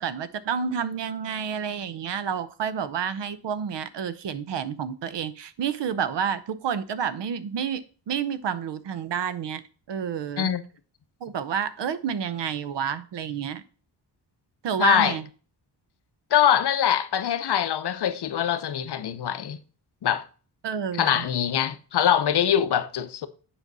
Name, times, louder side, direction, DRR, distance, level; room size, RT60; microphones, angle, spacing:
voice 1, 0.0-9.6 9.9-10.5 11.2-13.6 14.6-15.3 20.6-21.3, right 7 dB, 70° right, 0.8 m, -29 dB
voice 2, 14.8-15.1 16.3-19.6 20.0-20.2 21.0-23.3, left 9 dB, 65° left, 0.7 m, -23 dB
7.5 x 5.1 x 4.0 m
wide cardioid pair, 130°, 43 cm